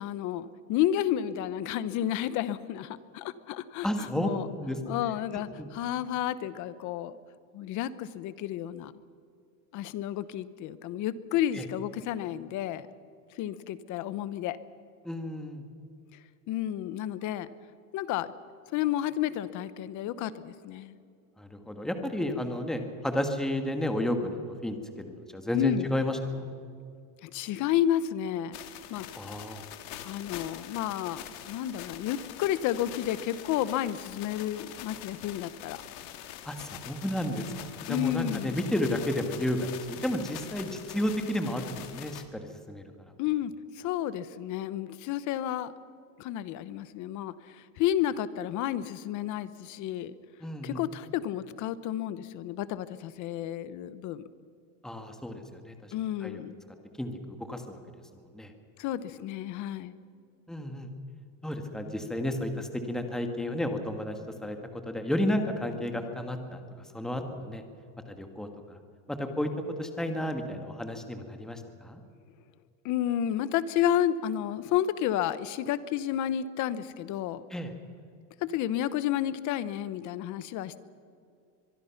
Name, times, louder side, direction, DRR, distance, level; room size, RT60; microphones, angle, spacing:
voice 1, 0.0-4.5 4.9-7.2 7.5-8.9 9.7-12.9 13.3-14.6 16.5-17.5 17.9-18.3 18.7-21.0 25.5-25.9 27.2-28.6 28.9-29.1 30.0-35.8 37.9-38.6 43.2-45.7 46.2-50.1 50.6-54.3 55.9-56.6 58.8-60.0 72.8-77.4 78.4-80.8, left 11 dB, 40° left, 15 dB, 0.9 m, -31 dB
voice 2, 3.8-4.3 4.6-4.9 5.3-5.7 11.5-11.6 15.0-15.7 21.4-26.5 29.2-29.6 36.4-43.1 50.4-50.8 54.8-55.9 56.2-56.4 57.0-57.8 58.3-58.5 60.5-60.9 61.4-66.6 66.9-67.6 68.1-68.8 69.1-69.5 69.8-72.0 77.5-77.7, left 1 dB, ahead, 5 dB, 1.4 m, -32 dB
sound 1, 28.5-42.2, left 12 dB, 65° left, 2.0 m, -44 dB
23.5 x 22.5 x 5.9 m, 2.4 s
cardioid pair, 160°, 46 cm